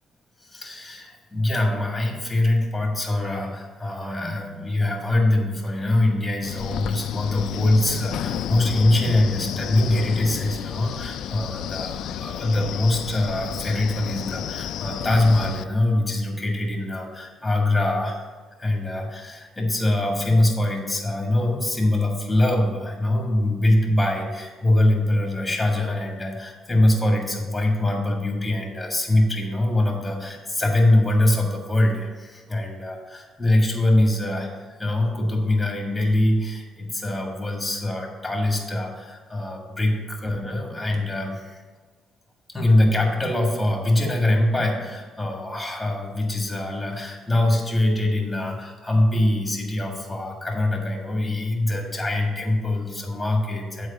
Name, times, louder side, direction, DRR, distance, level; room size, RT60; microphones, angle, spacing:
voice 1, 0.4-18.3 18.6-41.6 42.5-53.9, left 1 dB, 5° left, 1 dB, 1.7 m, -23 dB
Wind, 6.4-15.6, left 10 dB, 70° left, 0.3 m, -31 dB
7.9 x 4.6 x 6.9 m, 1.4 s
cardioid pair, 135°, 0 cm